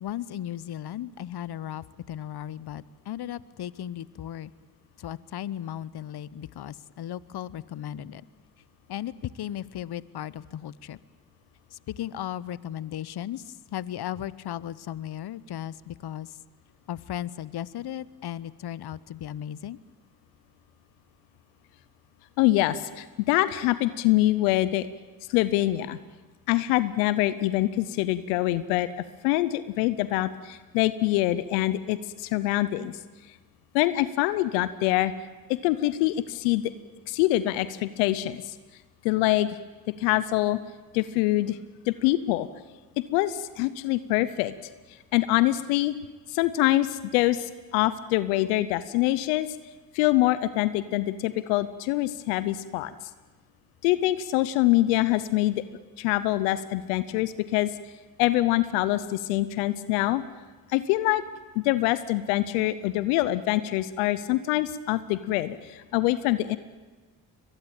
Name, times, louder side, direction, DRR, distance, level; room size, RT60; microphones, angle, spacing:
voice 1, 0.0-4.5 5.0-8.3 8.9-11.0 11.7-16.4 16.9-19.8, left 11 dB, 55° left, 19 dB, 0.9 m, -36 dB
voice 2, 22.4-24.9 25.3-26.0 26.5-28.9 29.2-33.0 33.7-35.1 35.5-36.6 37.1-38.5 39.0-39.6 40.0-40.6 40.9-41.6 41.9-42.5 43.1-44.5 45.1-45.9 46.3-49.5 49.9-52.9 53.8-55.6 56.0-57.7 58.2-60.2 60.7-61.2 61.6-66.6, left 16 dB, 90° left, 15 dB, 0.8 m, -24 dB
22.5 x 22.0 x 8.9 m, 1.3 s
hypercardioid pair, 45°, 47 cm